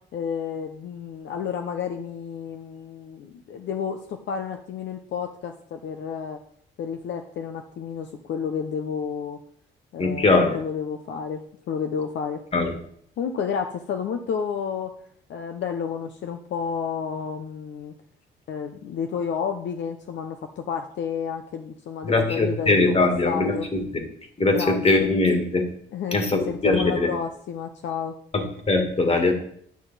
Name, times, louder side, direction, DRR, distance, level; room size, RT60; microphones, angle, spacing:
voice 1, 0.1-6.4 6.8-9.4 9.9-11.4 11.7-12.4 13.2-14.9 15.3-17.9 18.5-23.7 24.5-25.1 25.9-28.2, left 7 dB, 65° left, 5 dB, 0.6 m, -31 dB
voice 2, 10.0-10.6 12.5-12.7 22.0-23.8 24.4-25.6 26.1-27.1 28.3-29.3, left 2 dB, 30° left, 4 dB, 1.8 m, -21 dB
9.6 x 5.8 x 4.0 m, 0.65 s
cardioid pair, 90°, 20 cm